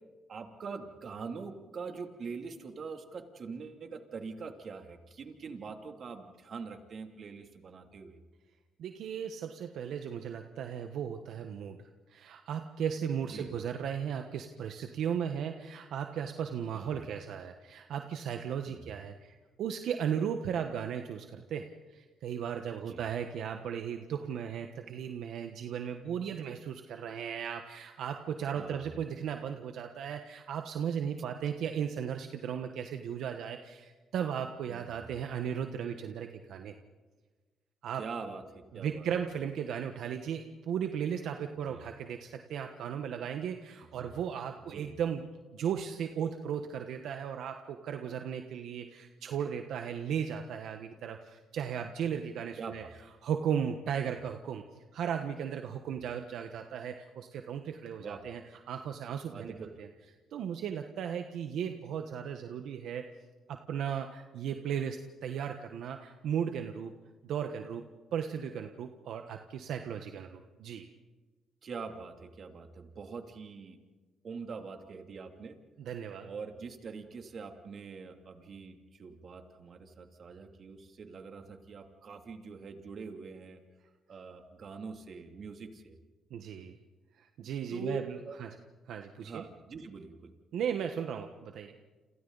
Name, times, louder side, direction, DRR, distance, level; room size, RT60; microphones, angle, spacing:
voice 1, 0.3-8.2 13.3-13.5 16.7-17.0 18.7-18.9 22.9-23.0 28.5-28.9 34.7-34.9 38.0-39.1 41.7-41.8 44.0-44.1 44.7-44.9 52.6-52.9 58.0-58.2 59.3-59.7 71.6-73.8 74.2-75.6 76.2-83.6 84.1-86.0 87.7-88.4 89.2-90.4, right 5 dB, 50° right, 4 dB, 2.8 m, -43 dB
voice 2, 8.8-11.8 12.1-36.7 37.8-38.0 38.7-45.3 45.5-52.8 53.2-54.6 54.9-58.4 58.7-59.5 59.8-59.9 60.3-63.0 63.5-66.9 67.2-67.9 68.1-70.9 75.8-76.3 86.3-86.8 87.2-88.5 88.9-89.4 90.5-91.8, right 8 dB, 75° right, 6 dB, 1.2 m, -36 dB
30.0 x 27.5 x 4.1 m, 1.3 s
cardioid pair, 90°, 0 cm